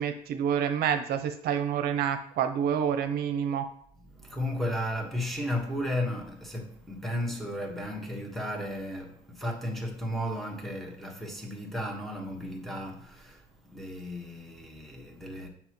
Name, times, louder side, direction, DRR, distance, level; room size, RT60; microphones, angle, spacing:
voice 1, 0.0-3.7, right 8 dB, 70° right, 0.6 m, -28 dB
voice 2, 4.0-13.4 13.7-15.5, left 1 dB, ahead, 1.5 m, -34 dB
7.8 x 5.6 x 3.1 m
cardioid pair, 110°, 17 cm